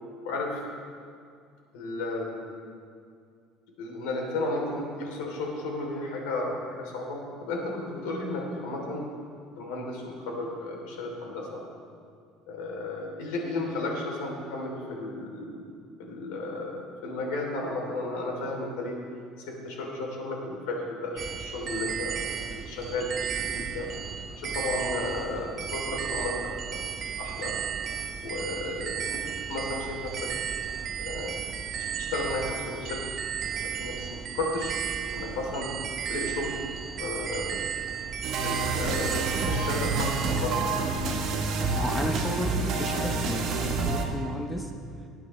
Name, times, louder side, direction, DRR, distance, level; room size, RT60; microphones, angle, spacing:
voice 1, 1.7-2.3 3.8-9.0 9.6-11.6 12.5-15.5 16.0-19.0 19.6-22.1 22.7-23.9 24.3-26.3 26.7-26.8 27.2-27.5 28.2-29.1 29.5-30.3 31.0-31.4 31.8-33.0 33.8-34.7 35.1-35.7 36.1-36.6 37.0-37.6 38.4-40.9, left 2 dB, 90° left, -1 dB, 2.9 m, -33 dB
sound 1, 21.2-40.4, right 8 dB, 40° right, 0.7 m, -34 dB
sound 2, 38.2-44.0, right 3 dB, 55° right, 1.7 m, -28 dB
voice 2, 41.7-44.7, equal, 5° left, 3 dB, 0.7 m, -33 dB
19.5 x 9.3 x 3.1 m, 2.3 s
cardioid pair, 140°, 0 cm